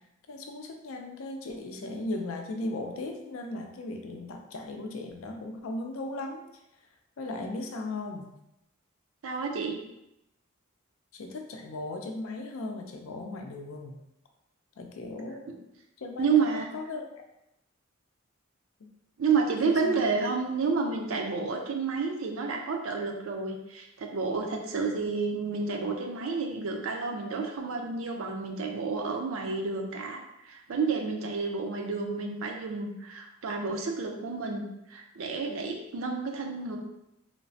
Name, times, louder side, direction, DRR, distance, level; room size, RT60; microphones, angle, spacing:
voice 1, 0.3-6.5 7.2-8.3 11.1-14.0 14.8-15.5 16.0-17.1 18.8-18.9 19.5-20.0, left 2 dB, 85° left, 4 dB, 0.4 m, -37 dB
voice 2, 9.2-9.8 16.2-16.7 19.2-34.6 34.9-36.8, right 4 dB, 85° right, 2 dB, 0.5 m, -30 dB
3.2 x 2.0 x 2.6 m, 0.85 s
head